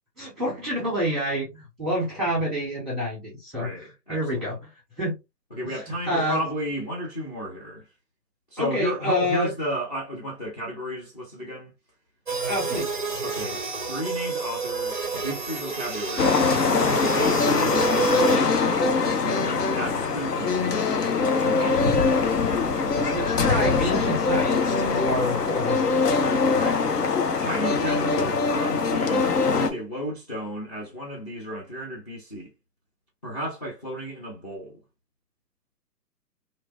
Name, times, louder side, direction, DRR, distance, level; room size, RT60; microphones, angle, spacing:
voice 1, 0.2-4.7 5.0-5.2 5.6-6.4 8.6-9.5 12.4-13.0 23.1-25.9, equal, ahead, 0.8 m, -28 dB
voice 2, 3.6-4.5 5.5-7.8 8.5-11.7 13.2-16.5 16.9-19.2 19.7-20.8 21.4-22.4 26.3-26.9 27.4-32.5 33.2-34.8, equal, 25° left, 0.5 m, -33 dB
sound 1, 12.3-18.4, right 4 dB, 35° right, 0.4 m, -29 dB
sound 2, 16.2-29.7, left 4 dB, 70° left, 0.8 m, -23 dB
2.9 x 2.5 x 2.4 m
figure-of-eight pair, 140°, 50 cm